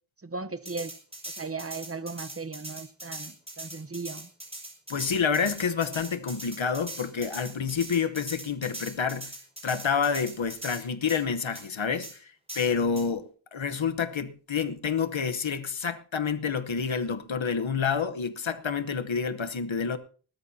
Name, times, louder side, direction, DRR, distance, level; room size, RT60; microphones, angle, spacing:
voice 1, 0.2-0.9 1.4-4.3, right 4 dB, 30° right, 0.9 m, -37 dB
sound 1, 0.7-10.8 11.1-11.2 11.6-11.7 12.0-12.1 12.5-13.1, right 1 dB, 10° right, 5.2 m, -41 dB
voice 2, 4.9-9.3 9.6-20.0, left 6 dB, 70° left, 1.1 m, -28 dB
20.0 x 13.0 x 2.8 m
wide cardioid pair, 40°, 47 cm